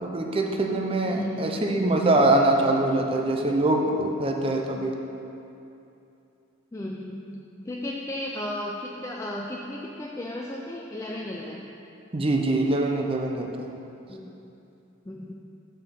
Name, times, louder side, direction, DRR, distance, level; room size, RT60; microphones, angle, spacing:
voice 1, 0.0-5.0 12.1-13.7, right 2 dB, 30° right, 2 dB, 0.6 m, -23 dB
voice 2, 1.0-1.6 6.7-11.6 14.1-14.3 15.1-15.3, left 1 dB, 15° left, -2 dB, 0.4 m, -34 dB
6.7 x 4.6 x 6.8 m, 2.8 s
head